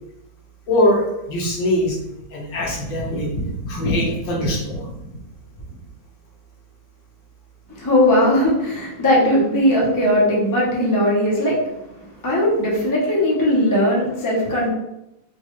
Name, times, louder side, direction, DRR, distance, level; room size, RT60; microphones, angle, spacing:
voice 1, 0.7-2.0 2.3-5.2, left 1 dB, 75° left, -2 dB, 1.6 m, -22 dB
voice 2, 7.7-11.6 12.2-14.7, left 1 dB, 30° left, -5 dB, 0.3 m, -18 dB
4.3 x 2.4 x 3.0 m, 0.89 s
omnidirectional pair, 2.0 m